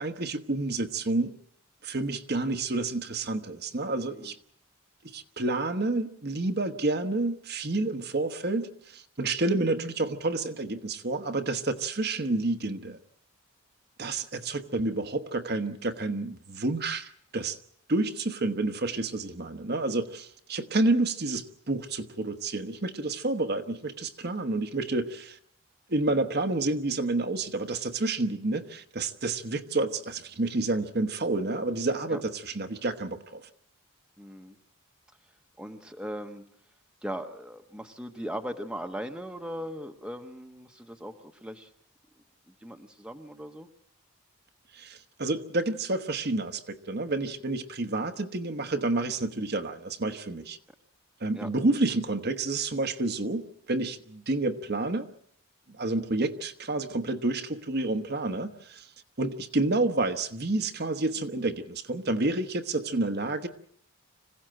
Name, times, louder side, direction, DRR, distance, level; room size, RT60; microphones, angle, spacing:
voice 1, 0.0-1.3 1.8-4.4 5.0-13.0 14.0-17.6 17.9-25.4 25.9-33.5 44.7-50.6 51.2-55.1 55.7-58.9 59.2-63.5, right 2 dB, 45° right, 8 dB, 1.1 m, -29 dB
voice 2, 34.2-34.5 35.6-36.4 37.0-41.7 42.5-43.7 51.3-51.5, equal, 5° right, 4 dB, 1.1 m, -39 dB
26.0 x 16.5 x 7.7 m, 0.65 s
head